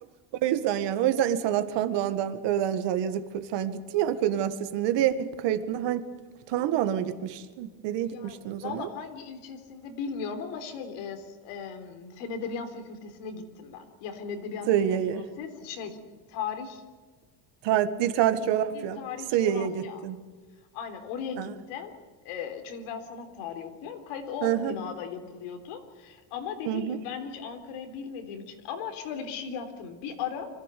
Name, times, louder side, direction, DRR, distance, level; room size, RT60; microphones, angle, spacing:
voice 1, 0.3-6.1 6.5-8.9 14.7-15.2 17.6-19.0 19.3-20.2 21.4-21.5 24.4-24.7 26.6-27.0, right 10 dB, 60° right, 10 dB, 1.8 m, -27 dB
voice 2, 8.0-16.0 16.3-16.8 18.7-20.0 20.7-21.9 22.2-30.5, left 6 dB, 85° left, 6 dB, 3.8 m, -37 dB
25.5 x 15.5 x 8.4 m, 1.4 s
cardioid pair, 165°, 49 cm